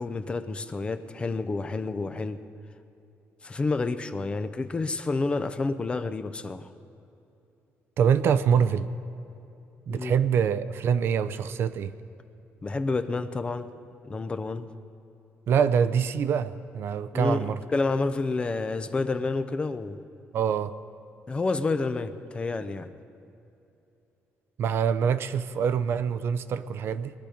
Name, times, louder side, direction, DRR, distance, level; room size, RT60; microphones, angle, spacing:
voice 1, 0.0-2.4 3.4-6.7 9.9-10.2 12.6-13.7 14.0-14.7 17.1-20.0 21.3-22.9, left 3 dB, 20° left, 10 dB, 0.5 m, -29 dB
voice 2, 8.0-8.9 9.9-11.9 15.5-17.6 20.3-20.7 24.6-27.1, right 7 dB, 55° right, 13 dB, 0.5 m, -25 dB
21.5 x 12.0 x 5.1 m, 2.8 s
cardioid pair, 155°, 5 cm